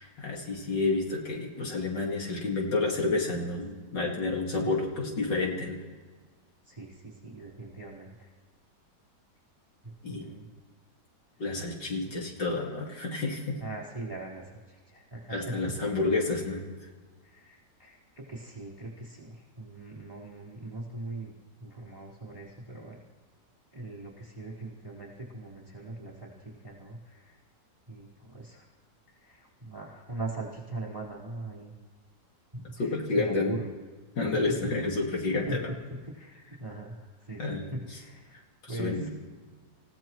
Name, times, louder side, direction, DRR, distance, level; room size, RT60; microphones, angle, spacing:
voice 1, 0.0-5.8 10.0-10.3 11.4-13.6 15.3-16.6 32.8-33.6 34.2-35.6 37.4-37.6 38.6-39.1, left 3 dB, 75° left, -1 dB, 2.8 m, -30 dB
voice 2, 6.6-8.3 9.8-10.5 11.8-12.1 13.6-16.1 17.2-21.3 21.6-23.0 23.7-27.4 27.9-28.7 29.1-31.7 32.5-33.6 34.3-34.6 35.5-38.3 38.7-39.1, right 2 dB, 15° right, -5 dB, 4.3 m, -41 dB
28.0 x 16.0 x 3.1 m, 1.4 s
omnidirectional pair, 1.9 m